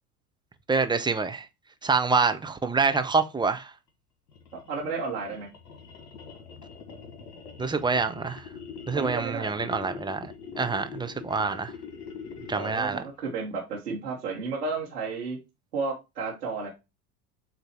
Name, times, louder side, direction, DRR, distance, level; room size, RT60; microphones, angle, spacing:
voice 1, 0.7-1.5 1.8-3.7 7.6-8.5 8.9-11.7 12.5-13.0, right 4 dB, 10° right, 0.6 m, -26 dB
sound 1, 4.3-13.0, left 6 dB, 75° left, 1.5 m, -43 dB
voice 2, 4.5-5.5 8.9-9.6 12.5-15.4 15.7-16.7, right 4 dB, 85° right, 1.6 m, -32 dB
7.9 x 2.7 x 4.4 m
hypercardioid pair, 75°, 46 cm